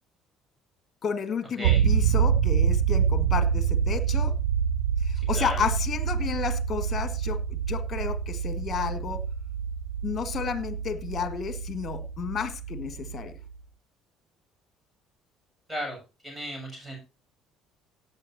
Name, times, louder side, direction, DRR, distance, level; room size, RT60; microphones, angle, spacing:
voice 1, 1.0-4.3 5.0-7.4 7.7-9.2 10.0-13.4, left 6 dB, 40° left, 12 dB, 1.8 m, -32 dB
sound 1, 1.6-13.6, right 7 dB, 80° right, 0.5 m, -26 dB
voice 2, 5.1-5.7 15.7-16.0 16.2-17.0, equal, 15° right, 1 dB, 7.7 m, -35 dB
17.5 x 8.8 x 2.8 m, 0.29 s
hypercardioid pair, 55°, 0 cm